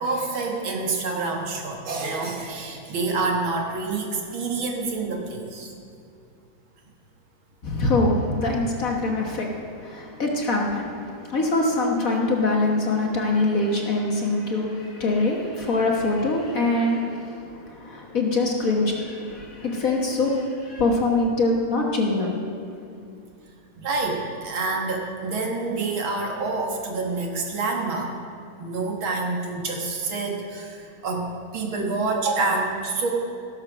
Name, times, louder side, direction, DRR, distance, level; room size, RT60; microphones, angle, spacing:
voice 1, 0.0-5.7 23.8-28.1 28.6-31.3 31.5-33.1, right 3 dB, 70° right, 1 dB, 2.3 m, -27 dB
voice 2, 7.6-9.5 9.8-10.9 11.3-22.4, left 2 dB, 45° left, 0 dB, 1.5 m, -24 dB
16.5 x 7.4 x 6.1 m, 2.5 s
omnidirectional pair, 2.3 m